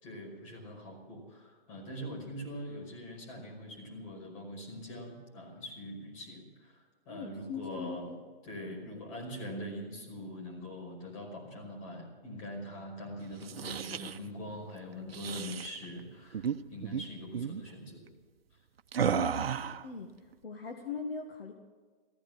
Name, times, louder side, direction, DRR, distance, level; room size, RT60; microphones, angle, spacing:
voice 1, 0.0-8.1 8.4-18.1 19.0-19.2, equal, 35° left, 1 dB, 5.3 m, -43 dB
voice 2, 7.1-8.2 8.9-9.0 19.1-19.3 19.8-20.1 20.4-21.5, left 5 dB, 75° left, 4 dB, 1.9 m, -40 dB
sound 1, 13.3-14.2 15.1-15.7 16.3-16.6 16.8-17.0 17.3-17.6 18.9-19.9, right 8 dB, 80° right, 0.9 m, -33 dB
15.0 x 15.0 x 6.2 m, 1.4 s
hypercardioid pair, 155°, 29 cm